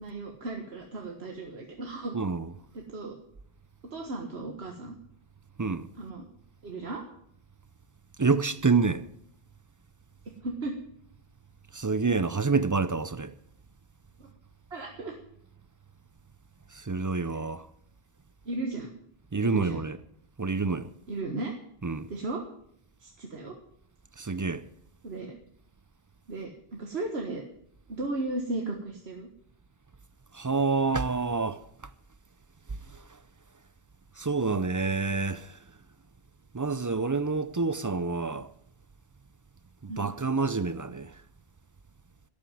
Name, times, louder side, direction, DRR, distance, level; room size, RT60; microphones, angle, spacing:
voice 1, 0.0-2.2 2.8-3.1 3.9-5.0 6.0-6.2 6.6-7.0 10.3-10.8 14.2-14.3 14.7-15.2 18.5-18.9 19.4-19.8 21.1-21.5 22.1-22.4 23.0-23.6 25.0-25.4 26.3-27.4 27.9-29.3 39.9-40.1, right 2 dB, 90° right, 1.8 m, -35 dB
voice 2, 2.1-2.5 5.6-5.9 8.2-9.1 11.7-13.3 16.7-17.7 19.3-20.0 20.4-20.9 21.8-22.1 24.2-24.7 30.3-31.9 32.7-33.2 34.1-35.8 36.5-38.5 39.8-41.2, right 4 dB, 30° right, 0.4 m, -28 dB
12.5 x 8.7 x 9.2 m
omnidirectional pair, 1.0 m